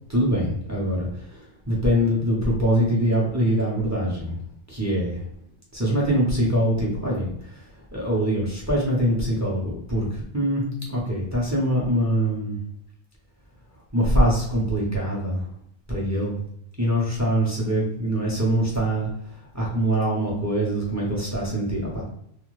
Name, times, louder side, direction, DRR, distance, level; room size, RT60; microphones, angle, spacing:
voice 1, 0.1-4.4 4.7-5.2 5.7-12.6 13.9-15.4 15.9-16.4 16.8-22.1, equal, 15° right, -5 dB, 0.7 m, -24 dB
2.4 x 2.3 x 3.1 m, 0.72 s
omnidirectional pair, 1.2 m